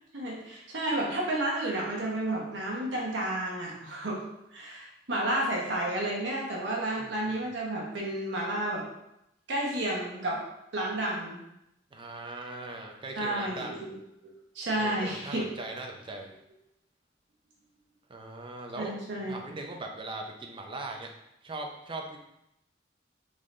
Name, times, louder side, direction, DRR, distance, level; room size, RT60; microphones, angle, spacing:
voice 1, 0.1-4.2 4.5-8.8 9.5-10.4 10.7-11.4 13.2-13.8 14.5-15.5 18.8-19.4, right 1 dB, 70° right, -3 dB, 1.0 m, -31 dB
voice 2, 7.0-7.4 11.9-13.9 14.7-16.3 18.1-21.1 21.4-22.2, right 2 dB, 30° right, 2 dB, 0.6 m, -40 dB
3.8 x 3.7 x 3.2 m, 0.82 s
head